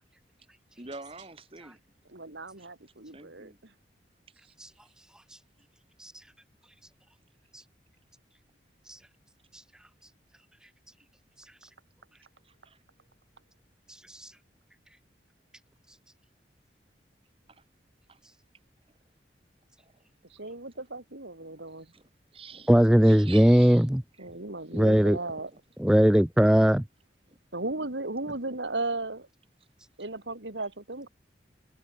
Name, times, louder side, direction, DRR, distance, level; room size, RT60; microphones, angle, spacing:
voice 1, 0.8-1.8 3.1-3.6 4.4-4.5 12.7-12.8 18.1-18.2 21.9-22.0 22.3-22.7 23.0-23.8 24.3-24.4 25.5-25.6 27.3-27.4, right 4 dB, 30° right, 1.9 m, -45 dB
voice 2, 2.1-3.5 20.3-21.9 24.2-25.5 27.5-29.3 30.0-31.1, right 2 dB, 85° right, 3.1 m, -35 dB
voice 3, 22.7-24.0 24.7-25.2 25.8-26.8, equal, 5° right, 0.4 m, -20 dB
head